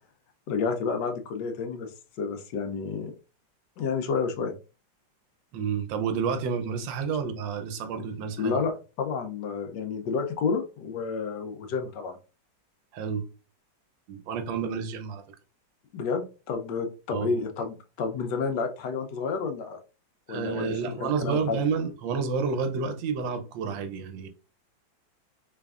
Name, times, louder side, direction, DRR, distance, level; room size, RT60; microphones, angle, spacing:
voice 1, 0.5-1.9 2.2-3.1 3.8-4.5 8.4-12.2 15.9-19.8 20.3-21.6, left 5 dB, 75° left, 1.2 m, -30 dB
voice 2, 5.5-8.6 12.9-13.2 14.1-15.2 17.1-17.3 20.3-24.3, right 6 dB, 85° right, 1.4 m, -30 dB
4.0 x 3.4 x 2.4 m
omnidirectional pair, 2.0 m